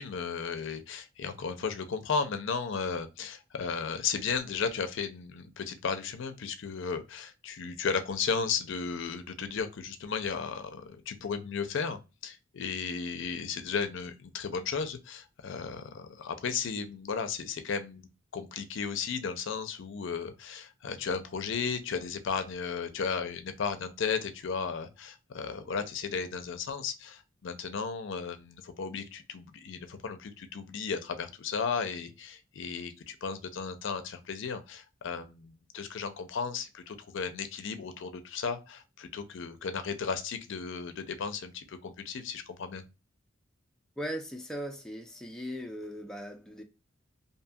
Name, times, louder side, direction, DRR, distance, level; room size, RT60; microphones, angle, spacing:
voice 1, 0.0-42.8, left 5 dB, 65° left, 0.4 m, -35 dB
voice 2, 44.0-46.6, equal, 5° left, 0.3 m, -38 dB
2.7 x 2.3 x 2.6 m
head